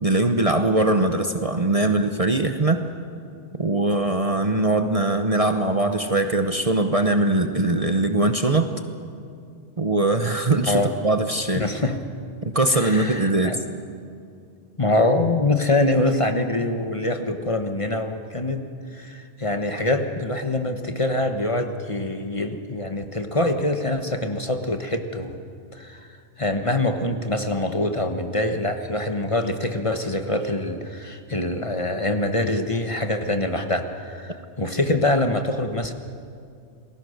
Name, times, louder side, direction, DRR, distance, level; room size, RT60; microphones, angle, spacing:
voice 1, 0.0-2.8 3.6-8.7 9.8-11.7 12.5-13.6, right 2 dB, 35° right, 7 dB, 1.0 m, -21 dB
voice 2, 11.6-12.0 12.7-13.6 14.8-18.6 18.9-25.4 25.7-26.1 26.4-35.9, left 2 dB, 30° left, 6 dB, 1.2 m, -24 dB
28.5 x 20.0 x 6.6 m, 2.4 s
omnidirectional pair, 1.2 m